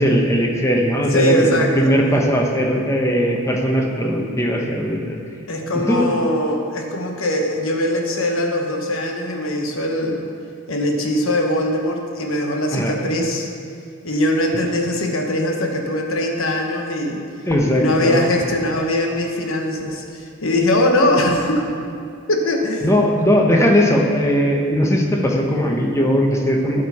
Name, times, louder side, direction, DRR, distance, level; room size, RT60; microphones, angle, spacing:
voice 1, 0.0-5.2 5.7-6.1 12.7-12.9 17.5-18.2 22.8-26.8, equal, 15° left, 1 dB, 0.9 m, -18 dB
voice 2, 1.1-1.9 5.5-10.2 10.7-13.5 14.0-17.2 17.7-21.6 22.3-23.0, left 1 dB, 70° left, 2 dB, 1.1 m, -21 dB
12.5 x 6.6 x 4.2 m, 2.4 s
head